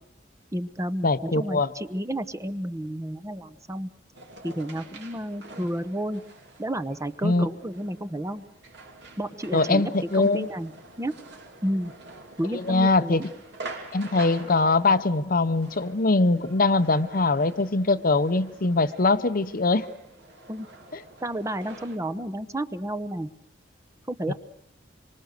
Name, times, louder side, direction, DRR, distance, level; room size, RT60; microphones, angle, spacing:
voice 1, 0.5-3.9 4.4-6.2 6.6-8.4 9.2-10.7 11.0-11.1 11.6-11.9 12.4-13.3 20.5-20.7 21.2-23.3 24.1-24.3, right 1 dB, 15° right, 11 dB, 0.9 m, -31 dB
voice 2, 1.0-1.7 7.2-7.5 9.5-10.5 12.5-13.2 13.9-19.9 24.3-24.4, left 3 dB, 50° left, 12 dB, 0.8 m, -22 dB
sound 1, 4.1-22.0, right 2 dB, 65° right, 3.1 m, -46 dB
26.0 x 24.5 x 6.6 m, 0.80 s
head